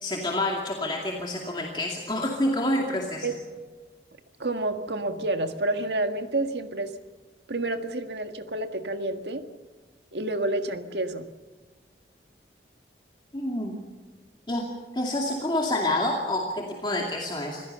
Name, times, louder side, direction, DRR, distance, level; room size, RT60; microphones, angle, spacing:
voice 1, 0.0-3.3 13.3-13.8 14.5-14.6 14.9-17.6, left 1 dB, 25° left, -1 dB, 2.4 m, -28 dB
voice 2, 4.4-6.9 7.5-9.4 10.1-11.2, right 2 dB, 80° right, 7 dB, 1.7 m, -29 dB
26.0 x 17.0 x 6.8 m, 1.4 s
head